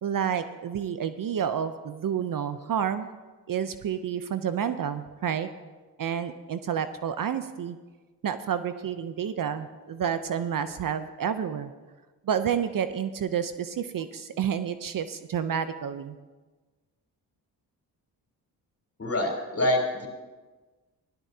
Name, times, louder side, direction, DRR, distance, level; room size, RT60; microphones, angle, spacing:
voice 1, 0.0-3.1 3.5-5.5 6.0-7.8 8.2-11.7 12.3-16.2, right 8 dB, 50° right, 11 dB, 0.7 m, -29 dB
voice 2, 19.0-20.1, left 1 dB, 35° left, 0 dB, 3.9 m, -26 dB
16.5 x 12.5 x 2.8 m, 1.3 s
supercardioid pair, 55°, 44 cm